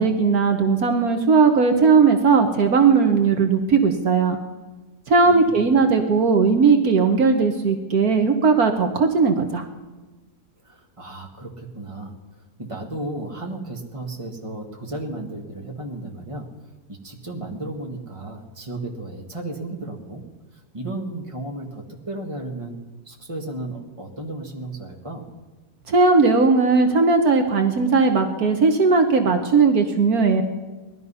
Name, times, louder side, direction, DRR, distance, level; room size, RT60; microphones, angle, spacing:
voice 1, 0.0-4.4 5.1-9.6 25.9-30.4, right 4 dB, 65° right, 5 dB, 1.5 m, -18 dB
voice 2, 5.2-5.7 10.6-16.5 16.9-20.2 20.5-22.7 23.1-25.3, right 2 dB, 20° right, 1 dB, 1.8 m, -34 dB
19.0 x 12.0 x 5.6 m, 1.2 s
omnidirectional pair, 1.8 m